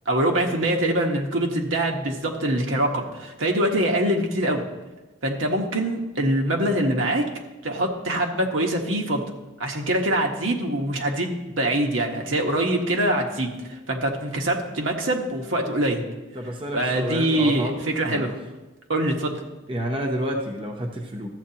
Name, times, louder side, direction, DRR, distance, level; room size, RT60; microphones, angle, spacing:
voice 1, 0.1-4.6 5.2-7.2 7.6-9.2 9.6-16.0 16.7-18.3 18.9-19.4, right 1 dB, 80° right, 1 dB, 1.3 m, -24 dB
voice 2, 16.3-17.7 18.0-18.3 19.7-21.3, right 1 dB, 25° right, 2 dB, 0.7 m, -29 dB
13.5 x 7.9 x 2.9 m, 1.1 s
head